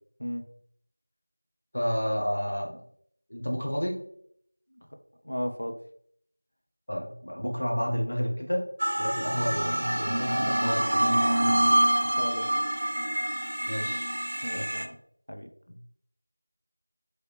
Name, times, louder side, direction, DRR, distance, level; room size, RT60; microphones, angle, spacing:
voice 1, 1.7-2.8 3.3-4.0 6.9-8.7 9.0-11.7 13.7-14.1 14.5-14.8 15.7-15.8, equal, 45° left, -2 dB, 1.1 m, -31 dB
voice 2, 5.2-5.8 12.1-12.7 14.4-15.0 15.3-15.5, equal, 70° left, 4 dB, 0.7 m, -35 dB
sound 1, 8.8-14.8, right 1 dB, 40° right, 0.4 m, -26 dB
4.7 x 3.2 x 3.1 m, 0.66 s
figure-of-eight pair, 180°, 0 cm